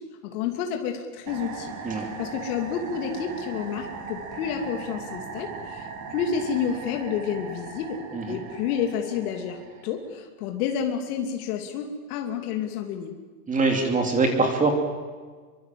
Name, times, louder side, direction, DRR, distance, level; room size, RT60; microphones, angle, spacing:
voice 1, 0.2-8.0 8.2-13.2, left 7 dB, 65° left, 3 dB, 2.9 m, -30 dB
sound 1, 1.3-10.1, right 5 dB, 40° right, 4.3 m, -39 dB
voice 2, 13.5-14.7, right 3 dB, 15° right, 3 dB, 3.0 m, -23 dB
26.0 x 23.5 x 7.7 m, 1.5 s
supercardioid pair, 145°, 48 cm